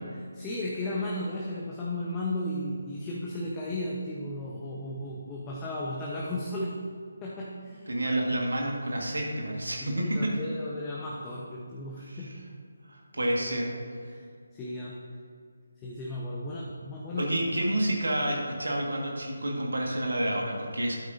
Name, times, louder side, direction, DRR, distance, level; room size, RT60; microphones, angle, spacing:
voice 1, 0.1-6.7 7.2-7.9 9.8-12.3 13.1-13.6 14.1-14.3 14.5-15.0 15.8-17.3, left 1 dB, 15° left, -6 dB, 0.9 m, -35 dB
voice 2, 7.9-10.3 12.1-12.3 12.9-13.7 17.2-20.9, right 1 dB, 70° right, -1 dB, 1.7 m, -29 dB
12.0 x 8.9 x 2.7 m, 2.2 s
figure-of-eight pair, 150°, 0 cm